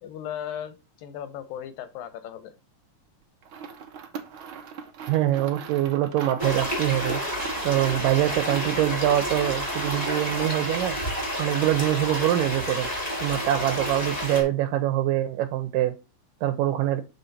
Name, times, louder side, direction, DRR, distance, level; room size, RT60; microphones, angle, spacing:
voice 1, 0.0-2.5, left 9 dB, 90° left, 13 dB, 2.7 m, -37 dB
sound 1, 3.4-10.8, right 6 dB, 65° right, 1.2 m, -39 dB
voice 2, 5.1-7.2 7.6-11.0 11.4-12.9 13.2-15.9 16.4-17.0, right 13 dB, 90° right, 6 dB, 2.4 m, -24 dB
sound 2, 6.4-14.4, equal, 10° left, 2.6 m, -30 dB
7.0 x 5.2 x 4.1 m, 0.29 s
omnidirectional pair, 3.9 m